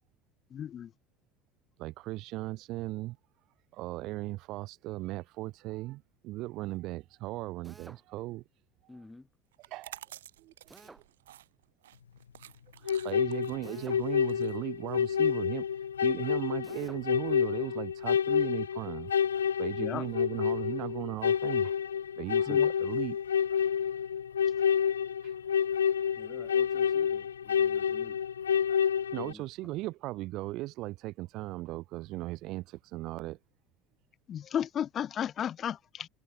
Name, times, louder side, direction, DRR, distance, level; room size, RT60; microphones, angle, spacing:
voice 1, 0.5-0.9 19.8-20.0 22.5-22.7 34.3-36.1, left 9 dB, 40° left, 0.4 m, -33 dB
voice 2, 1.8-3.2 3.7-8.4 9.7-10.0 10.4-10.5 10.8-10.9 12.8-15.7 16.0-19.1 19.6-23.2 25.2-25.4 29.1-33.4, right 18 dB, 55° right, 0.9 m, -37 dB
Drill, 7.6-8.0 10.7-11.0 13.6-14.1 16.6-17.0, right 3 dB, 15° right, 3.9 m, -52 dB
voice 3, 8.9-9.3 26.2-28.2 29.1-29.4, left 2 dB, 10° left, 7.8 m, -51 dB
sound 1, 9.5-15.3, right 13 dB, 75° right, 5.2 m, -51 dB
sound 2, 12.9-29.3, left 8 dB, 85° left, 0.6 m, -29 dB
figure-of-eight pair, 65°, 0 cm